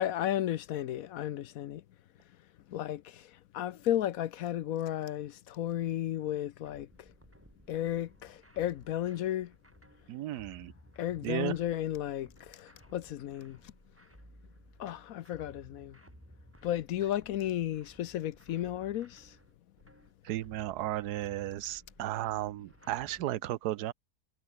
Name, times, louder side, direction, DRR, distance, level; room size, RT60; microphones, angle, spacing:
voice 1, 0.0-1.8 2.7-3.2 3.5-6.9 7.7-9.5 11.0-13.6 14.8-15.9 16.6-19.3, left 12 dB, 65° left, 1.0 m, -33 dB
sound 1, 6.6-23.2, right 1 dB, 5° right, 3.1 m, -58 dB
voice 2, 10.1-10.7 11.2-11.6 20.2-23.9, right 14 dB, 75° right, 1.2 m, -34 dB
omnidirectional pair, 1.8 m